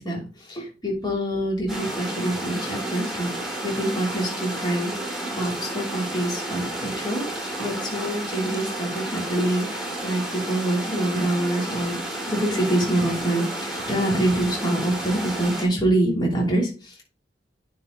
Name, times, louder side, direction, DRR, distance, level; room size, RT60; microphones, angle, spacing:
voice 1, 0.0-12.0 12.3-17.0, right 1 dB, 25° left, -2 dB, 3.0 m, -26 dB
sound 1, 1.7-15.6, right 1 dB, 5° right, 3.6 m, -31 dB
9.7 x 6.5 x 3.9 m, 0.34 s
head